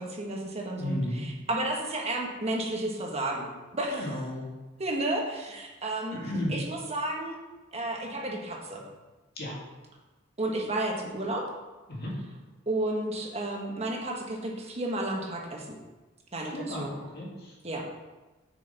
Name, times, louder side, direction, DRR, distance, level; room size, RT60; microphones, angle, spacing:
voice 1, 0.0-4.2 4.8-6.2 6.5-7.4 7.7-8.8 10.4-11.4 12.7-15.8 16.3-16.9 17.6-17.8, right 1 dB, 30° right, -1 dB, 1.3 m, -32 dB
voice 2, 0.8-1.2 3.9-4.5 6.1-6.5 9.4-9.6 11.9-12.1 16.4-16.9 17.1-17.5, left 1 dB, 50° left, -3 dB, 2.0 m, -33 dB
6.7 x 6.6 x 4.1 m, 1.2 s
head